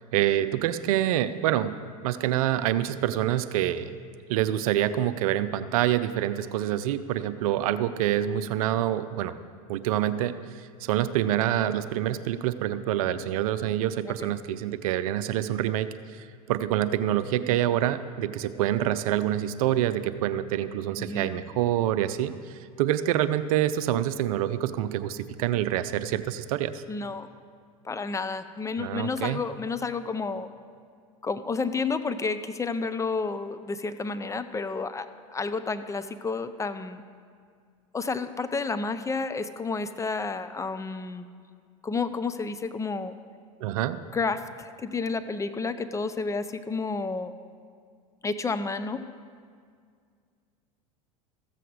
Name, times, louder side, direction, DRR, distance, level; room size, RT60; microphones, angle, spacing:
voice 1, 0.0-1.7 2.0-3.9 4.3-9.4 9.7-10.3 10.8-26.8 28.8-29.4 43.6-44.0, right 12 dB, 70° right, 13 dB, 0.6 m, -26 dB
voice 2, 21.0-21.3 26.9-27.3 27.8-30.5 31.2-37.0 37.9-41.3 41.8-43.1 44.1-47.3 48.2-49.0, left 4 dB, 15° left, 11 dB, 0.5 m, -31 dB
14.5 x 7.7 x 4.8 m, 2.1 s
hypercardioid pair, 90°, 19 cm